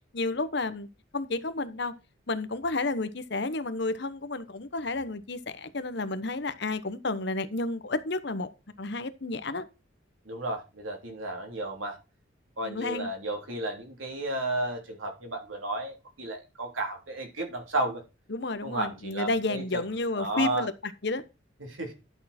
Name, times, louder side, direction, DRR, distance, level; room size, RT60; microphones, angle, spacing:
voice 1, 0.1-0.9 1.1-1.9 2.3-8.5 8.8-9.7 12.6-13.1 18.3-21.2, left 3 dB, 60° left, 1.0 m, -31 dB
voice 2, 10.2-12.0 12.6-18.0 18.6-19.8 20.1-20.7 21.6-21.9, right 2 dB, 90° right, 3.3 m, -33 dB
11.0 x 6.5 x 4.3 m
head